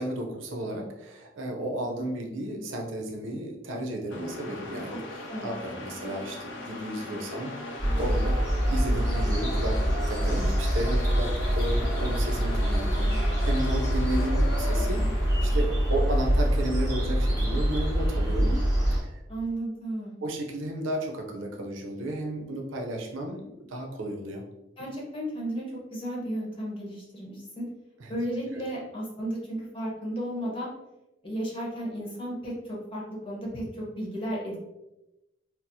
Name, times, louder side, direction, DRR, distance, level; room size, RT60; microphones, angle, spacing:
voice 1, 0.0-8.4 8.7-18.7 19.0-19.2 20.2-24.4 28.0-28.1 28.5-28.6, right 1 dB, 80° right, 1 dB, 0.6 m, -33 dB
sound 1, 4.1-16.4, left 2 dB, 75° left, 0.6 m, -38 dB
sound 2, 7.8-19.0, equal, 20° right, 1.3 m, -25 dB
voice 2, 19.3-20.2 24.8-25.6 25.9-27.6 28.1-30.7 31.2-34.6, right 1 dB, 30° left, -4 dB, 0.9 m, -34 dB
4.3 x 2.0 x 2.6 m, 0.95 s
head